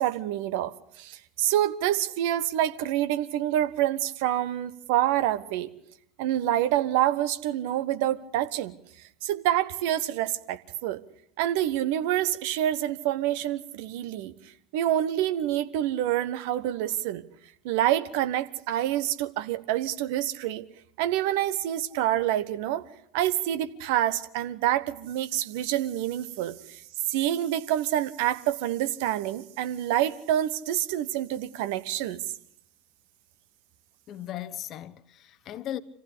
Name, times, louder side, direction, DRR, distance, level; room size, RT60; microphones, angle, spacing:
voice 1, 0.0-5.7 6.2-8.7 9.2-11.0 11.4-14.3 14.7-17.2 17.6-20.6 21.0-22.8 23.1-26.8 27.1-32.2, right 12 dB, 55° right, 1.3 m, -27 dB
voice 2, 34.1-35.8, left 12 dB, 40° left, 1.2 m, -37 dB
26.5 x 15.0 x 8.5 m
figure-of-eight pair, 75°, 0 cm